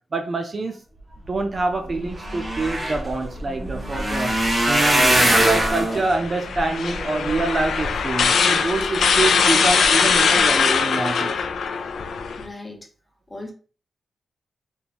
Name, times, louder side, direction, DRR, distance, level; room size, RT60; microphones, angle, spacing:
voice 1, 0.1-0.8 1.3-4.3 4.7-11.3, right 3 dB, 30° right, 0.4 m, -26 dB
sound 1, 1.5-1.6 1.8-8.2 8.8-9.2 9.6-9.8 10.1-10.2, right 1 dB, 15° right, 1.0 m, -22 dB
sound 2, 5.9-12.4, left 6 dB, 70° left, 0.5 m, -21 dB
voice 2, 12.4-12.8 13.3-13.5, left 2 dB, 15° left, 0.9 m, -36 dB
3.8 x 3.6 x 2.9 m
wide cardioid pair, 165°, 0 cm